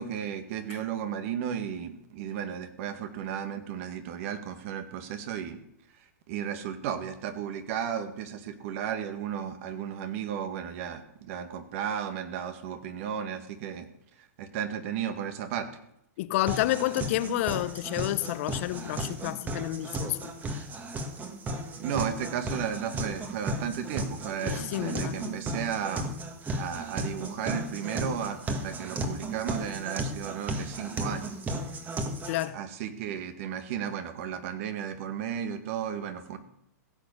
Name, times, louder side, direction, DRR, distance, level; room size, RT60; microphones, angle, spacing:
voice 1, 0.0-5.6 6.3-13.9 14.2-15.7 21.8-26.2 26.5-31.3 32.5-36.4, right 8 dB, 50° right, 1.9 m, -34 dB
voice 2, 16.2-20.3 24.4-25.4 32.3-32.6, left 16 dB, 50° left, 0.7 m, -30 dB
sound 1, 16.5-32.5, right 1 dB, 20° right, 1.7 m, -35 dB
16.0 x 6.7 x 8.7 m
hypercardioid pair, 130°, 9 cm